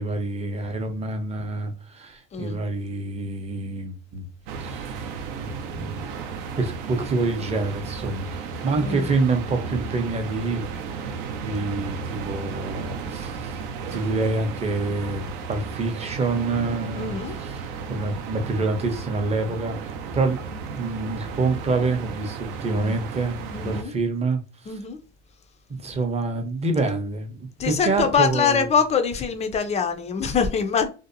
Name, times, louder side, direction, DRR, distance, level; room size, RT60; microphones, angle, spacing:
voice 1, 0.0-4.2 4.6-5.0 5.4-6.1 6.6-10.7 11.4-13.6 13.9-20.4 20.7-24.4 24.7-24.8 25.8-28.7, right 3 dB, 20° right, 0.6 m, -27 dB
sound 1, 4.5-23.8, right 5 dB, 70° right, 0.5 m, -34 dB
voice 2, 17.0-17.4 22.7-22.9 23.5-23.9 24.7-25.0 27.6-30.9, left 6 dB, 20° left, 0.3 m, -24 dB
2.6 x 2.0 x 2.5 m
supercardioid pair, 100°, 34 cm